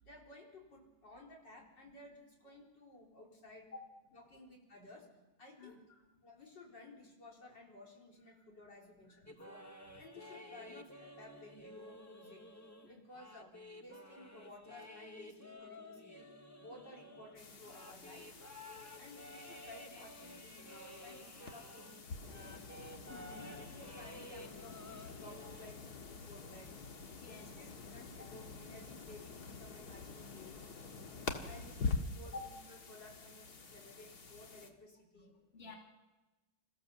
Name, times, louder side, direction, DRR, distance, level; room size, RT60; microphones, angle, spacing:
voice 1, 0.0-3.7 4.1-5.1 5.4-5.8 6.2-9.6 10.0-12.4 12.9-16.3 16.6-18.3 19.0-22.5 23.3-26.7 27.3-30.7 31.5-35.3, left 2 dB, 75° left, -1 dB, 4.8 m, -56 dB
voice 2, 5.6-6.0 8.4-8.5 9.1-9.5 9.9-10.0 12.8-13.0 18.9-19.0 23.0-23.6 27.1-27.4 31.3-31.5 32.2-32.4 35.2-35.8, left 3 dB, 35° left, 1 dB, 2.9 m, -52 dB
sound 1, 9.3-22.0 22.3-25.7, left 1 dB, 10° left, 0.9 m, -53 dB
sound 2, 17.4-34.7, left 4 dB, 60° left, 2.2 m, -46 dB
27.5 x 15.5 x 7.3 m, 1.1 s
omnidirectional pair, 1.9 m